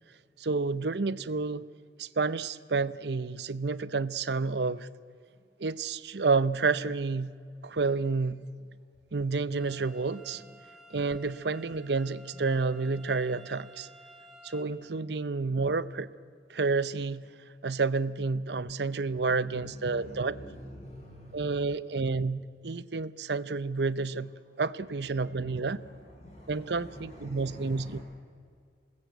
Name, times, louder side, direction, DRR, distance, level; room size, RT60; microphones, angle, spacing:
voice 1, 0.4-1.6 2.0-4.9 5.6-7.4 7.6-8.4 9.1-10.4 10.9-13.9 14.4-16.1 16.5-17.3 17.6-20.4 21.3-24.3 24.6-25.8 26.5-28.0, right 4 dB, 75° right, 16 dB, 0.7 m, -30 dB
sound 1, 9.6-14.6, right 1 dB, 5° right, 2.6 m, -54 dB
voice 2, 19.1-21.7 25.2-28.0, equal, 40° left, -3 dB, 8.0 m, -47 dB
27.0 x 20.5 x 8.1 m, 2.2 s
head